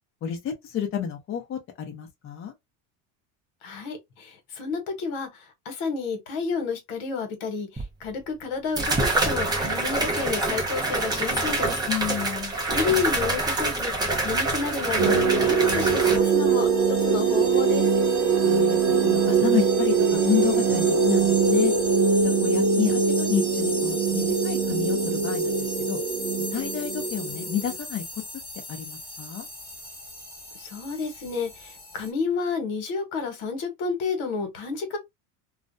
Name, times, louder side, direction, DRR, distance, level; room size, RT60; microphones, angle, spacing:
voice 1, 0.2-2.5 11.9-12.5 18.4-21.7 22.2-26.0 26.5-28.0 28.7-29.5, left 10 dB, 30° left, 0.6 m, -30 dB
voice 2, 3.6-5.3 5.6-11.8 12.7-13.9 14.2-17.9 30.6-35.0, left 5 dB, 80° left, 1.1 m, -30 dB
sound 1, 7.8-7.9 8.8-16.2, right 2 dB, 10° right, 0.4 m, -26 dB
sound 2, 15.0-27.8, right 5 dB, 50° right, 0.6 m, -22 dB
sound 3, 15.6-32.1, left 1 dB, 10° left, 1.2 m, -37 dB
2.4 x 2.1 x 2.5 m
cardioid pair, 140°, 40 cm